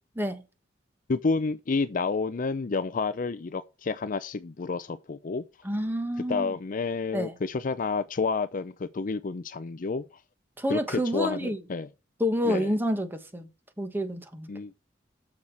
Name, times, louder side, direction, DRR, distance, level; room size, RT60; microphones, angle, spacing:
voice 1, 1.1-5.4 6.3-10.0 10.7-11.9 12.4-12.7 14.5-14.7, left 4 dB, 45° left, 0.5 m, -30 dB
voice 2, 5.6-6.5 7.1-7.3 10.6-11.6 12.2-13.5 13.8-14.5, equal, 10° right, 1.4 m, -28 dB
7.3 x 6.3 x 4.7 m
head